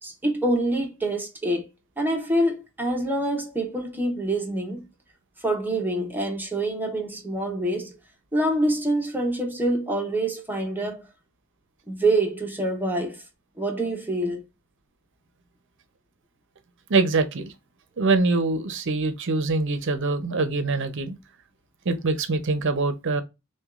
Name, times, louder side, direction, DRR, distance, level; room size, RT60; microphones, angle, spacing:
voice 1, 0.0-1.7 2.0-4.8 5.4-8.0 8.3-11.0 11.9-13.2 13.6-14.4, right 1 dB, 10° right, 0.7 m, -26 dB
voice 2, 16.9-17.5 18.0-21.2 21.9-23.2, right 3 dB, 55° right, 0.6 m, -24 dB
6.0 x 2.2 x 2.4 m
head